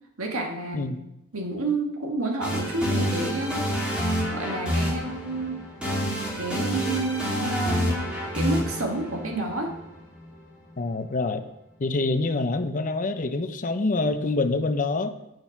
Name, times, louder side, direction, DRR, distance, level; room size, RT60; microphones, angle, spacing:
voice 1, 0.2-0.9 1.3-3.6 4.3-5.6 5.9-6.0 6.4-9.7, right 2 dB, 75° right, 1 dB, 1.7 m, -29 dB
sound 1, 2.4-10.3, equal, 5° right, 2.6 m, -28 dB
voice 2, 10.8-11.5 11.8-15.1, left 3 dB, 35° left, 9 dB, 0.6 m, -26 dB
7.7 x 6.8 x 5.8 m, 0.89 s
head